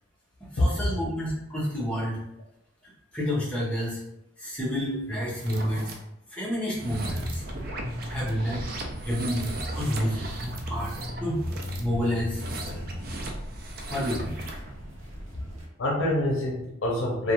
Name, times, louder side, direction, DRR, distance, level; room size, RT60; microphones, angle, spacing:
voice 1, 0.4-2.2 2.8-4.0 4.4-6.0 6.3-7.4 8.1-10.9 11.2-11.5 11.8-12.8 13.9-14.5, equal, 5° left, -8 dB, 0.8 m, -30 dB
sound 1, 5.2-5.9 6.6-14.7, right 2 dB, 45° right, 0.4 m, -39 dB
sound 2, 6.9-15.7, equal, 90° right, 0.7 m, -37 dB
voice 2, 15.5-17.3, left 1 dB, 75° left, -3 dB, 0.6 m, -26 dB
2.4 x 2.3 x 2.9 m, 0.85 s
head